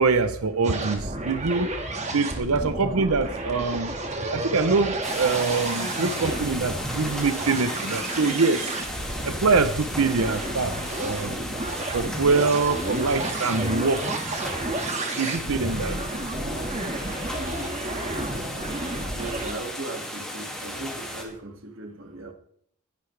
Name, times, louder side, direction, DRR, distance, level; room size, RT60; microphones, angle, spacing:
voice 1, 0.0-1.7 2.1-4.0 4.3-8.7 9.2-11.4 11.9-14.2 15.1-16.0, right 4 dB, 80° right, 11 dB, 0.8 m, -24 dB
sound 1, 0.6-19.5, right 2 dB, 30° right, 1.8 m, -31 dB
sound 2, 5.0-21.2, equal, 5° left, 2.3 m, -35 dB
voice 2, 19.1-22.3, right 2 dB, 60° right, 3 dB, 2.2 m, -38 dB
19.5 x 10.5 x 3.4 m, 0.65 s
head